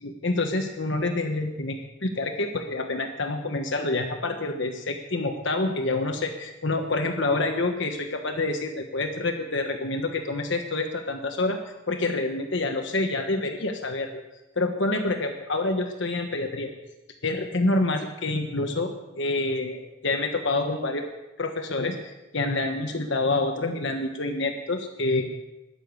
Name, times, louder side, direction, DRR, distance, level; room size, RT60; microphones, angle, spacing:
voice 1, 0.0-11.6 11.9-14.2 14.6-16.7 17.2-21.1 21.4-25.2, left 2 dB, 60° left, 5 dB, 1.2 m, -27 dB
21.0 x 7.0 x 8.1 m, 1.0 s
head